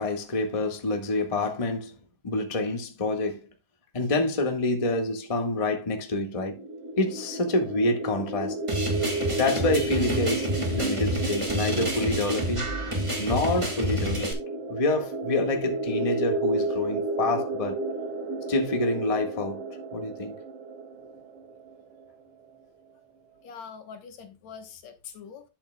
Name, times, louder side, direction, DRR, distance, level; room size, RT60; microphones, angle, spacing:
voice 1, 0.0-1.9 2.2-3.5 3.9-6.6 7.0-8.6 9.3-14.3 14.7-17.8 18.5-19.6 19.9-20.3, left 2 dB, 25° left, 0.7 m, -27 dB
sound 1, 6.4-22.1, right 2 dB, 85° right, 3.6 m, -33 dB
sound 2, 8.7-14.3, right 1 dB, 15° right, 1.0 m, -29 dB
voice 2, 23.4-25.4, left 6 dB, 70° left, 2.4 m, -43 dB
11.0 x 7.8 x 2.3 m
omnidirectional pair, 3.5 m